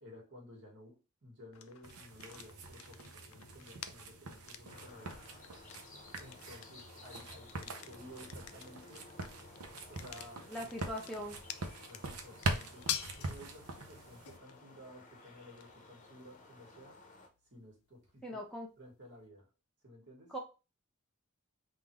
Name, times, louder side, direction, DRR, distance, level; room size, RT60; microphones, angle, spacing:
voice 1, 0.0-5.2 6.2-9.1 9.9-10.5 11.9-17.0 17.5-18.4 18.8-19.5 19.8-20.3, equal, 55° right, -1 dB, 1.9 m, -54 dB
sound 1, 1.5-19.3, left 10 dB, 70° left, 0.4 m, -49 dB
sound 2, 1.8-14.4, right 2 dB, 90° right, 0.7 m, -43 dB
sound 3, 4.6-17.3, left 2 dB, 35° left, 0.8 m, -57 dB
voice 2, 10.5-11.4 18.2-18.7 20.3-20.4, equal, 5° left, -2 dB, 0.7 m, -40 dB
3.8 x 2.6 x 4.5 m, 0.31 s
head